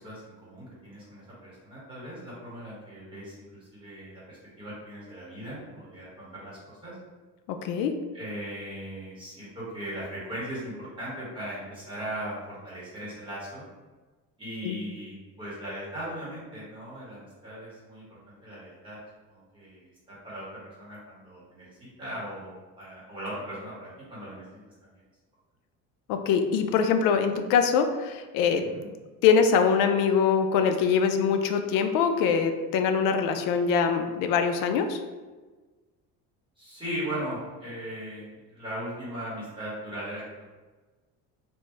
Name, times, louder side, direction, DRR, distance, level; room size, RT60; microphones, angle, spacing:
voice 1, 0.0-7.0 8.1-13.6 14.4-19.0 19.3-24.9 28.6-28.9 36.6-40.2, equal, 15° right, -9 dB, 1.3 m, -38 dB
voice 2, 7.5-7.9 14.6-14.8 26.1-28.6 29.2-35.0, left 6 dB, 80° left, 7 dB, 0.5 m, -23 dB
3.4 x 2.5 x 3.1 m, 1.3 s
cardioid pair, 155°, 33 cm